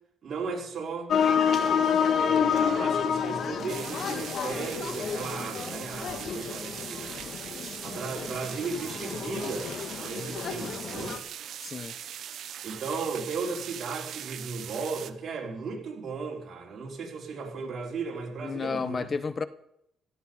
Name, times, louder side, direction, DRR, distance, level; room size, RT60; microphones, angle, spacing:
voice 1, 0.2-1.1 2.2-7.1 7.8-11.2 12.6-19.1, right 4 dB, 55° right, 4.7 m, -35 dB
sound 1, 1.1-11.2, left 7 dB, 60° left, 1.7 m, -29 dB
sound 2, 3.7-15.1, right 9 dB, 70° right, 0.9 m, -40 dB
voice 2, 11.6-12.0 18.4-19.5, left 5 dB, 35° left, 0.9 m, -31 dB
16.5 x 14.0 x 5.6 m
cardioid pair, 90°, 0 cm